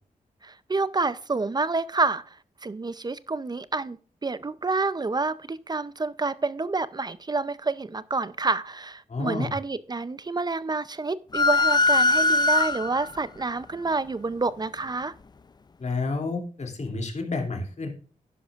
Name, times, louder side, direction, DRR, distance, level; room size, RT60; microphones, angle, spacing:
voice 1, 0.4-2.2 2.6-15.1, right 3 dB, 30° right, 0.5 m, -28 dB
voice 2, 9.1-9.5 15.8-17.9, left 3 dB, 55° left, 2.8 m, -30 dB
sound 1, 11.3-13.2, left 2 dB, 30° left, 0.4 m, -21 dB
11.5 x 11.0 x 2.4 m
wide cardioid pair, 90°, 14 cm